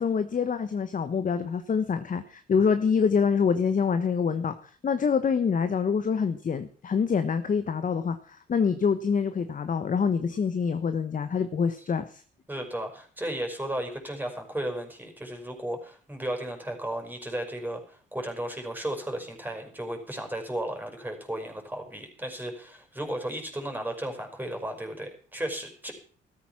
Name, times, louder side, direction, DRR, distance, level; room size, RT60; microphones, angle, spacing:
voice 1, 0.0-4.5 4.8-12.2, left 6 dB, 40° left, 10 dB, 1.2 m, -26 dB
voice 2, 12.5-25.9, right 1 dB, 10° right, 3 dB, 5.4 m, -34 dB
14.5 x 13.5 x 6.0 m, 0.43 s
cardioid pair, 90°, 20 cm